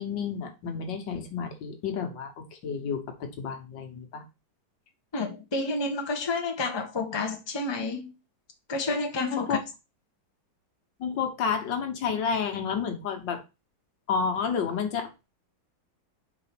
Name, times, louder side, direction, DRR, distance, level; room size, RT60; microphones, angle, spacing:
voice 1, 0.0-4.2 9.3-9.6 11.0-13.4 14.1-15.3, left 6 dB, 75° left, 1.9 m, -30 dB
voice 2, 5.1-8.1 8.7-9.6, left 3 dB, 15° left, 1.0 m, -30 dB
5.0 x 4.5 x 5.9 m
omnidirectional pair, 2.0 m